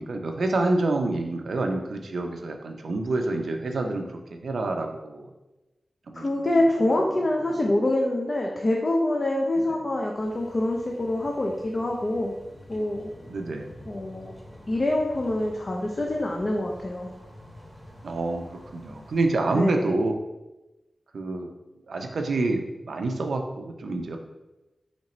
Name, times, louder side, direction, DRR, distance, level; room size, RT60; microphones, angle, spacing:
voice 1, 0.0-5.3 6.1-6.5 6.8-6.9 9.6-9.7 13.3-13.7 18.0-20.1 21.1-21.5 21.9-24.2, right 2 dB, 85° right, 4 dB, 0.5 m, -28 dB
voice 2, 6.1-12.3 12.7-13.1 13.9-14.3 14.7-17.1 19.5-20.0, left 1 dB, 45° left, 0 dB, 0.5 m, -25 dB
sound 1, 10.1-19.3, equal, 5° left, 1.0 m, -48 dB
4.2 x 2.9 x 4.1 m, 1.0 s
wide cardioid pair, 70°, 0 cm